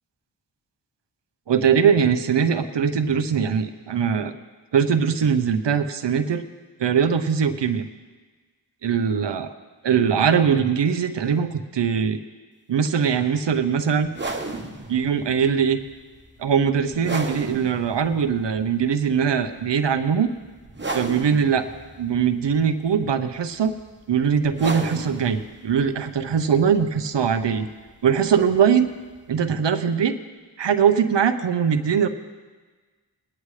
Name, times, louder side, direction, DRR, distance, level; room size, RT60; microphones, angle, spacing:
voice 1, 1.5-4.3 4.7-6.4 6.8-7.8 8.8-9.5 9.8-12.2 12.7-14.1 14.9-15.8 16.4-20.3 20.9-21.7 22.0-23.7 24.1-27.7 28.0-28.9 29.3-30.1 30.6-32.1, right 7 dB, 85° right, 8 dB, 0.8 m, -21 dB
sound 1, 14.0-29.4, right 2 dB, 25° right, 1.2 m, -36 dB
21.5 x 9.9 x 3.2 m, 1.4 s
wide cardioid pair, 85°, 41 cm